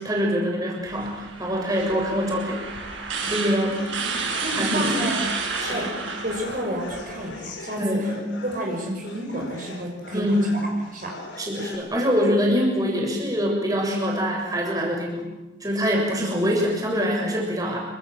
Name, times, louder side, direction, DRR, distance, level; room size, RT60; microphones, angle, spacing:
voice 1, 0.0-2.7 3.2-3.9 4.5-4.9 5.6-6.1 7.8-8.3 10.1-10.7 11.4-15.2 15.6-17.8, equal, 20° right, -1 dB, 7.3 m, -24 dB
sound 1, 0.8-7.3, right 4 dB, 85° right, 7.7 m, -31 dB
sound 2, 3.8-11.8, left 2 dB, 75° left, 6.6 m, -41 dB
voice 2, 4.0-5.3 5.7-5.9 6.2-7.8 8.5-10.2 10.9-11.1, equal, 45° right, 0 dB, 6.0 m, -30 dB
28.5 x 26.0 x 7.8 m, 1.0 s
head